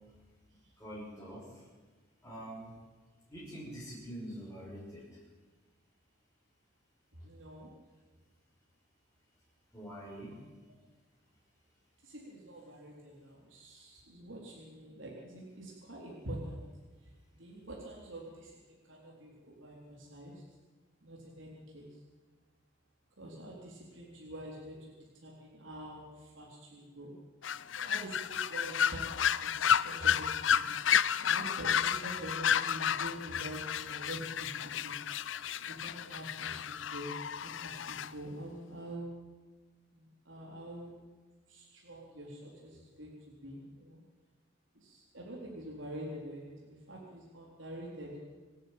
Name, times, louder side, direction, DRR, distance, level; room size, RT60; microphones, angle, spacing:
voice 1, 0.8-1.7 2.2-2.8 3.3-5.2 9.7-10.5, equal, 10° left, -8 dB, 6.4 m, -45 dB
voice 2, 7.1-7.7 12.0-16.7 17.0-20.4 21.0-22.0 23.2-27.1 27.7-30.7 31.2-35.0 35.6-39.1 39.9-40.9 41.5-44.0 44.7-48.1, right 1 dB, 80° right, -3 dB, 4.0 m, -46 dB
sound 1, 27.4-38.1, left 8 dB, 75° left, 0.6 m, -31 dB
27.0 x 10.5 x 9.0 m, 1.4 s
head